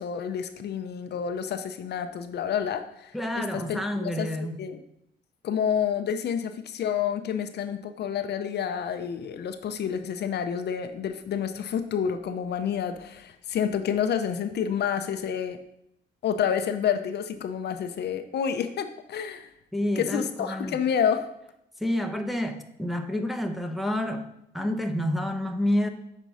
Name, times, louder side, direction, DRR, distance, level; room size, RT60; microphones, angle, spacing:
voice 1, 0.0-4.8 5.4-15.6 16.2-19.5 20.0-21.3, left 8 dB, 60° left, 0.6 m, -29 dB
voice 2, 3.1-4.6 19.7-20.8 21.8-24.2 24.5-25.9, left 1 dB, ahead, 0.7 m, -28 dB
6.2 x 4.4 x 5.4 m
cardioid pair, 100°, 20 cm